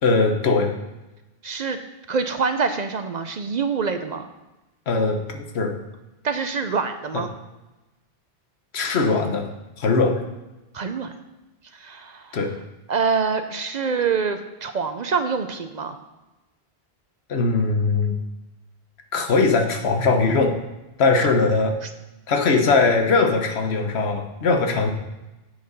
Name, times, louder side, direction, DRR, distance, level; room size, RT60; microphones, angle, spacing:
voice 1, 0.0-0.7 4.9-5.7 7.1-7.2 8.7-9.5 9.8-10.2 12.3-12.5 17.3-18.2 19.1-20.5 21.0-21.7 22.3-24.9, left 4 dB, 90° left, 5 dB, 1.2 m, -20 dB
voice 2, 1.4-1.8 2.1-4.3 6.2-7.3 10.7-11.1 11.7-12.4 12.9-16.0 21.2-21.3, right 5 dB, 50° right, 8 dB, 0.6 m, -25 dB
8.0 x 6.6 x 5.3 m, 1.0 s
omnidirectional pair, 1.1 m